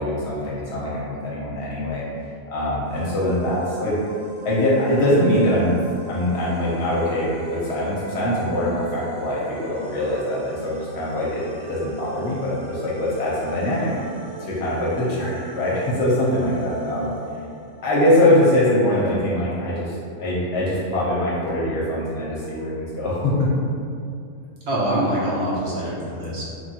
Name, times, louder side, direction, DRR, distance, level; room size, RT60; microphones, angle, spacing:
voice 1, 0.0-2.1 2.5-3.9 4.4-5.8 6.1-13.9 14.4-17.1 17.8-23.5, left 1 dB, 60° left, -6 dB, 0.8 m, -22 dB
sound 1, 2.9-18.2, right 3 dB, ahead, 0.8 m, -41 dB
voice 2, 24.7-26.4, right 1 dB, 65° right, -7 dB, 0.8 m, -24 dB
3.1 x 2.2 x 2.7 m, 2.4 s
omnidirectional pair, 1.4 m